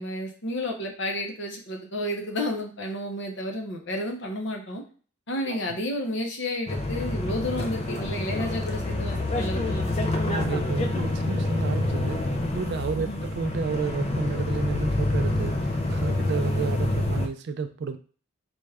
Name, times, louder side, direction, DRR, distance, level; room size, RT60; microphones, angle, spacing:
voice 1, 0.0-4.8 5.3-9.9 10.8-11.0 13.0-13.2, left 1 dB, 55° left, 2 dB, 0.8 m, -31 dB
voice 2, 5.4-5.8 10.3-12.2 12.5-18.0, right 5 dB, 50° right, 9 dB, 0.3 m, -31 dB
sound 1, 6.7-17.3, left 2 dB, 30° left, 0.4 m, -27 dB
4.1 x 2.4 x 3.3 m, 0.40 s
head